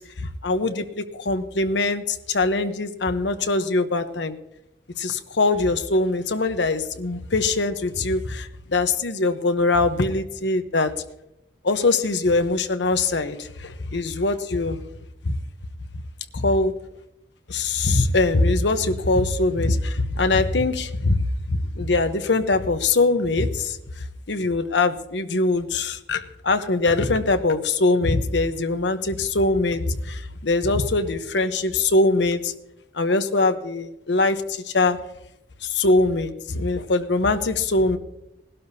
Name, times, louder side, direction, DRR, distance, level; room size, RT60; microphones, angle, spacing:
voice 1, 0.2-4.4 5.0-10.9 11.6-14.8 15.2-15.3 16.3-16.7 17.5-21.2 21.5-23.8 24.3-32.5 32.9-35.0 35.6-38.0, left 3 dB, 85° left, 9 dB, 0.9 m, -22 dB
19.5 x 12.0 x 2.8 m, 0.85 s
head